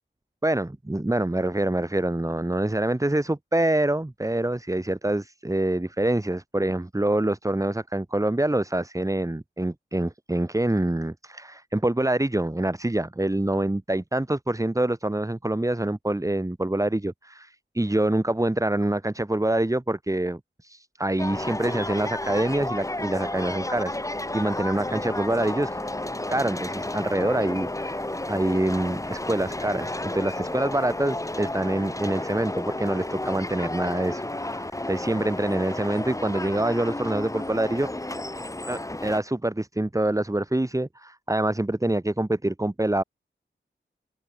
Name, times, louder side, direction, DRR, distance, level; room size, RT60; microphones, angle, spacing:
voice 1, 0.4-24.0 24.3-25.8 26.3-28.0 28.3-37.9 38.7-43.0, right 1 dB, 15° right, 5.6 m, -26 dB
sound 1, 21.2-39.2, left 1 dB, 15° left, 2.8 m, -32 dB
wide cardioid pair, 110°, 20 cm